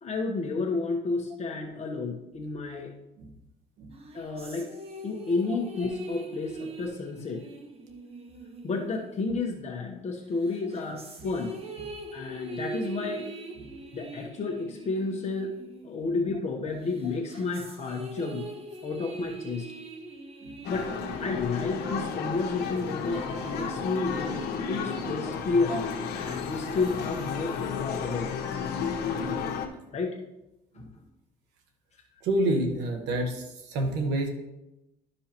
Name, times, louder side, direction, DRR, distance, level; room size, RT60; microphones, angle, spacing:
voice 1, 0.0-2.9 4.1-4.7 5.0-7.4 8.6-11.6 12.1-13.3 13.9-15.5 15.8-18.5 18.8-19.7 20.7-20.9 21.2-28.4 29.9-30.2 30.7-30.9, left 3 dB, 40° left, 0 dB, 1.0 m, -31 dB
sound 1, 3.9-9.9 10.4-16.4 16.8-21.9, right 2 dB, 35° right, 1.1 m, -42 dB
sound 2, 20.6-29.7, left 6 dB, 75° left, 1.1 m, -33 dB
voice 2, 32.2-34.3, right 1 dB, 90° right, 3 dB, 1.2 m, -28 dB
12.0 x 5.5 x 3.0 m, 0.93 s
cardioid pair, 110°, 17 cm